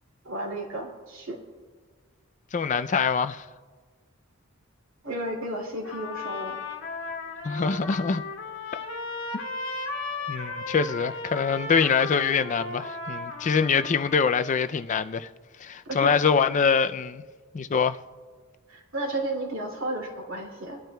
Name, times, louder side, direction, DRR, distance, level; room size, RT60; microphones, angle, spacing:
voice 1, 0.2-1.4 5.0-6.6 15.8-16.2 18.7-20.8, right 1 dB, 70° right, 2.6 m, -33 dB
voice 2, 2.5-3.5 7.4-8.2 10.3-15.3 15.6-17.2 17.5-18.0, left 6 dB, 35° left, 0.4 m, -24 dB
Trumpet, 5.8-14.3, left 3 dB, 65° left, 1.5 m, -36 dB
21.5 x 12.0 x 2.3 m
head